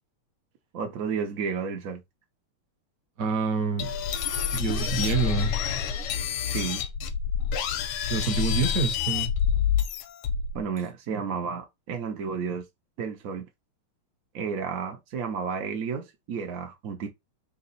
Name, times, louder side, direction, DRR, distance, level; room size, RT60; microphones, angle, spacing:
voice 1, 0.7-2.0 6.5-6.8 10.5-12.6 13.0-13.5 14.3-17.1, right 6 dB, 80° right, 0.7 m, -32 dB
voice 2, 3.2-3.9 4.5-5.6 8.1-9.3, right 5 dB, 55° right, 1.0 m, -27 dB
sound 1, 3.8-10.6, left 8 dB, 85° left, 1.5 m, -27 dB
3.6 x 2.8 x 4.0 m
omnidirectional pair, 2.4 m